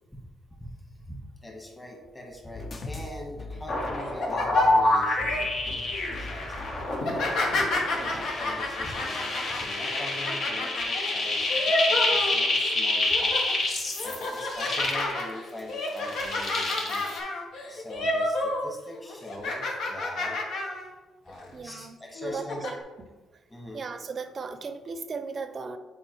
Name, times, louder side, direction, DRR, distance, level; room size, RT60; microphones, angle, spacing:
voice 1, 1.0-7.3 8.1-13.5 14.0-17.1 17.7-20.4 21.2-22.7 23.5-23.8, left 1 dB, 15° left, 0 dB, 1.4 m, -42 dB
sound 1, 2.5-8.6, left 2 dB, 45° left, 0.8 m, -42 dB
sound 2, 3.7-15.6 15.9-17.2, left 2 dB, 60° left, 1.3 m, -28 dB
sound 3, 4.0-5.4 5.9-6.2 7.0-12.7 13.0-13.5 14.0-18.7 18.9-20.9 21.3-21.4 22.2-22.7, left 2 dB, 80° left, 1.2 m, -30 dB
voice 2, 7.9-8.3 21.5-22.8 23.3-23.4 23.7-25.8, right 5 dB, 45° right, 9 dB, 0.5 m, -37 dB
7.4 x 4.5 x 3.2 m, 1.2 s
cardioid pair, 90°, 0 cm